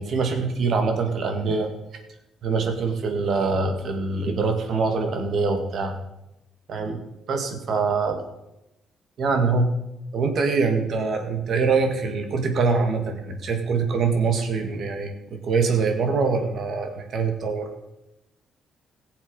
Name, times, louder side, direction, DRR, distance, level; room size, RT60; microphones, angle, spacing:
voice 1, 0.0-1.7 2.4-6.0 6.7-7.0 7.3-8.2 9.2-9.7 10.1-17.7, right 4 dB, 65° right, 5 dB, 2.2 m, -24 dB
17.0 x 7.3 x 5.6 m, 0.91 s
cardioid pair, 90°, 0 cm